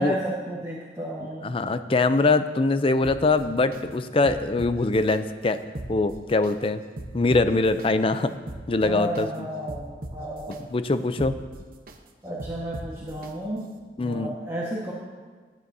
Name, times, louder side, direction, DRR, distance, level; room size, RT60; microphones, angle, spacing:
voice 1, 0.0-1.6 8.8-10.6 12.2-13.7 14.0-14.9, right 1 dB, 20° right, -6 dB, 1.4 m, -32 dB
voice 2, 1.4-5.6 5.9-6.8 7.1-8.3 8.7-9.5 10.5-11.3 14.0-14.3, left 3 dB, 30° left, 11 dB, 0.4 m, -23 dB
sound 1, 3.0-3.8 4.2-5.2 5.6-6.5 7.0-7.9 8.3-9.2 9.7-10.6 11.0-12.0 12.4-13.3 13.8-13.9, right 1 dB, 55° right, 0.9 m, -39 dB
19.5 x 9.1 x 2.7 m, 1.5 s
head